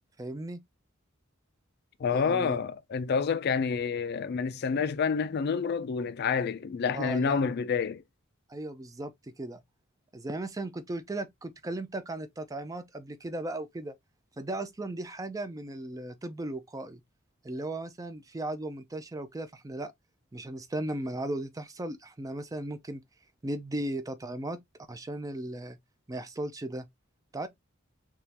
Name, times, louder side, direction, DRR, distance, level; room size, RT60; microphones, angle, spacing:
voice 1, 0.2-0.6 2.1-2.6 6.9-7.4 8.5-9.6 10.1-13.9 14.4-17.0 17.4-19.9 20.3-23.0 23.4-24.6 24.9-25.8 26.1-26.9 27.3-27.5, right 1 dB, 15° right, 0.4 m, -36 dB
voice 2, 2.0-8.0, left 5 dB, 50° left, 0.4 m, -28 dB
3.5 x 3.0 x 2.8 m
head